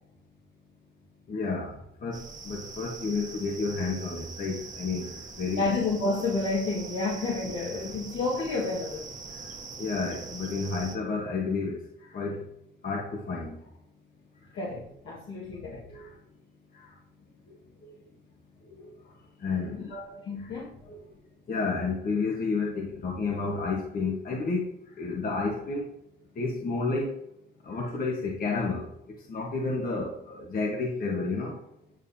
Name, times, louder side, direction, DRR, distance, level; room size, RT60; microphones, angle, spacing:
voice 1, 1.3-1.8 2.0-2.2 2.4-5.1 5.4-5.7 7.4-7.7 9.8-11.8 12.1-12.4 12.8-13.6 15.9-16.1 19.4-19.9 20.9-21.0 21.5-24.7 25.0-25.8 26.4-27.1 27.7-28.9 29.3-31.5, left 4 dB, 45° left, -1 dB, 1.3 m, -30 dB
sound 1, 2.1-11.0, right 4 dB, 40° right, 1.4 m, -43 dB
voice 2, 5.5-9.0 14.5-15.8 19.8-20.7, left 3 dB, 70° left, -6 dB, 1.9 m, -30 dB
9.1 x 5.4 x 2.8 m, 0.79 s
cardioid pair, 90°, 20 cm